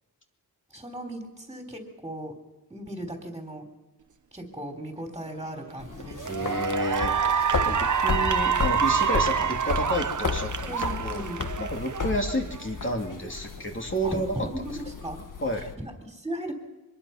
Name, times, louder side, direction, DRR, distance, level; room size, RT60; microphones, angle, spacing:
voice 1, 0.7-2.3 2.7-3.7 4.3-6.6 10.7-11.4 14.0-15.2 15.6-16.5, right 1 dB, 10° right, 2 dB, 3.6 m, -37 dB
Cheering / Applause, 5.4-5.7 6.2-12.7, right 7 dB, 45° right, 1.0 m, -27 dB
sound 1, 5.8-15.7, left 5 dB, 50° left, 1.8 m, -34 dB
voice 2, 6.2-7.1 7.6-11.2 11.6-14.5 15.4-15.7, equal, 30° left, 1 dB, 2.7 m, -30 dB
24.5 x 22.0 x 5.8 m, 1.1 s
wide cardioid pair, 115°, 41 cm